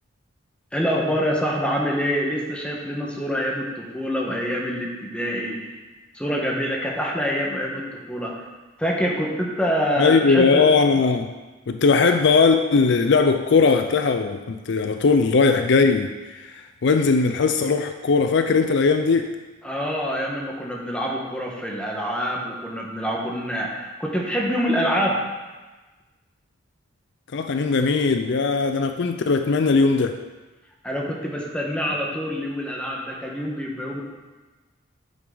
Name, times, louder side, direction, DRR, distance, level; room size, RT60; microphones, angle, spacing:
voice 1, 0.7-5.7 6.1-8.3 8.8-10.6 19.6-25.2 30.8-34.0, equal, 5° left, -2 dB, 1.3 m, -26 dB
voice 2, 10.0-11.3 11.7-19.3 27.3-30.2, left 4 dB, 60° left, 7 dB, 0.4 m, -19 dB
9.1 x 7.7 x 3.9 m, 1.2 s
head